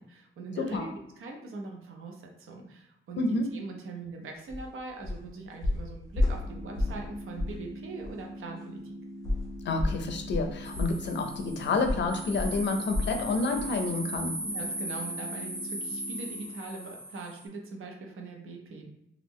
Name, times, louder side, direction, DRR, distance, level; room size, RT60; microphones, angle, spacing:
voice 1, 0.0-8.9 14.4-18.9, right 3 dB, 90° right, 1 dB, 0.7 m, -42 dB
voice 2, 0.6-0.9 3.2-3.5 9.6-14.4, left 3 dB, 60° left, 5 dB, 0.5 m, -29 dB
sound 1, 4.5-4.7 5.0-5.3 5.6-7.1 7.3-7.6 8.0-8.1 9.2-13.2 13.5-13.8 14.1-14.2, left 2 dB, 20° left, 0.7 m, -31 dB
sound 2, 6.4-16.4, equal, 15° right, 0.5 m, -44 dB
sound 3, 10.6-17.4, right 1 dB, 35° right, 0.8 m, -38 dB
3.0 x 2.4 x 3.6 m, 0.79 s
wide cardioid pair, 165°, 21 cm